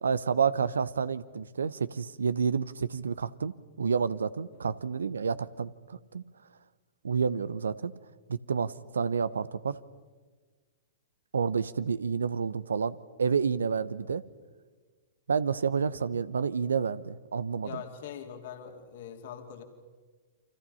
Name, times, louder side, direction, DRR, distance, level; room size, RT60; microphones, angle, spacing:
voice 1, 0.0-6.2 7.0-7.9 8.3-9.8 11.3-14.2 15.3-17.8, right 6 dB, 80° right, 16 dB, 0.9 m, -29 dB
voice 2, 17.6-19.6, left 8 dB, 60° left, 5 dB, 3.0 m, -42 dB
29.5 x 25.0 x 5.7 m, 1.4 s
hypercardioid pair, 110°, 0 cm